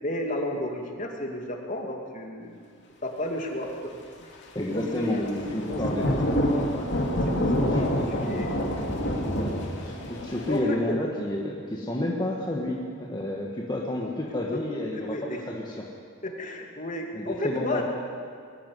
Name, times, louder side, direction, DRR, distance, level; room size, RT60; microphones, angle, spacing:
voice 1, 0.0-2.6 3.0-4.3 4.6-5.8 6.1-6.7 7.2-8.5 10.4-11.0 14.5-14.6 14.9-15.4 16.2-17.8, left 1 dB, 35° left, 1 dB, 2.5 m, -33 dB
voice 2, 4.5-6.2 7.7-8.4 9.3-9.5 9.8-15.9 17.1-17.8, left 1 dB, 20° left, -3 dB, 1.6 m, -30 dB
Thunder / Rain, 5.1-10.6, equal, 55° left, 3.0 m, -27 dB
21.0 x 13.5 x 9.5 m, 2.2 s
head